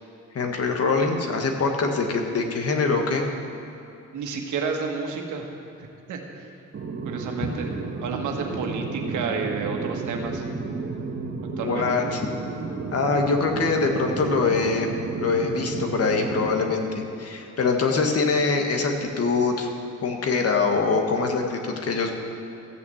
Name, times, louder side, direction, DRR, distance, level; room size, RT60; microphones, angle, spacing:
voice 1, 0.3-3.2 7.4-7.5 11.6-12.3 12.9-14.9 15.1-19.7 20.0-22.1, left 4 dB, 50° left, 3 dB, 1.6 m, -24 dB
voice 2, 4.1-5.5 5.8-6.5 7.0-7.7 8.0-10.4 11.6-11.9, right 5 dB, 80° right, 2 dB, 1.6 m, -31 dB
sound 1, 6.7-16.6, right 4 dB, 45° right, 1.5 m, -32 dB
14.5 x 6.0 x 8.0 m, 2.8 s
cardioid pair, 90°, 30 cm